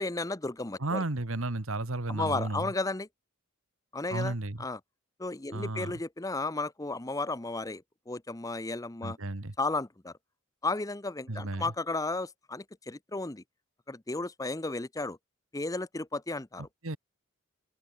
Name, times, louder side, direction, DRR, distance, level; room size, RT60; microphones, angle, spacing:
voice 1, 0.0-1.0 2.1-3.1 3.9-4.3 4.6-4.8 5.2-9.2 9.6-10.1 10.6-13.4 13.9-15.2 15.5-16.7, left 2 dB, 15° left, 0.7 m, -34 dB
voice 2, 0.8-2.7 4.1-4.6 5.5-5.9 9.0-9.5 11.3-11.7 16.8-17.0, right 2 dB, 65° right, 1.7 m, -33 dB
open air
head